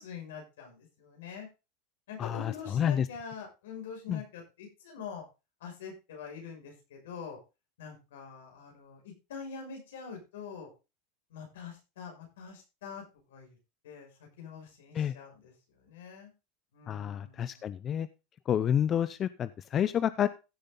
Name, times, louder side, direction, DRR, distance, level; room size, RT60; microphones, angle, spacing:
voice 1, 0.0-1.5 2.1-5.2 5.6-7.4 7.8-10.7 11.3-13.6 13.8-16.3 16.7-17.7, left 6 dB, 85° left, 1 dB, 6.0 m, -45 dB
voice 2, 2.2-3.1 4.1-4.2 14.9-15.1 16.9-18.1 18.5-20.3, left 9 dB, 35° left, 14 dB, 0.6 m, -29 dB
15.5 x 6.7 x 3.8 m, 0.28 s
supercardioid pair, 115°, 0 cm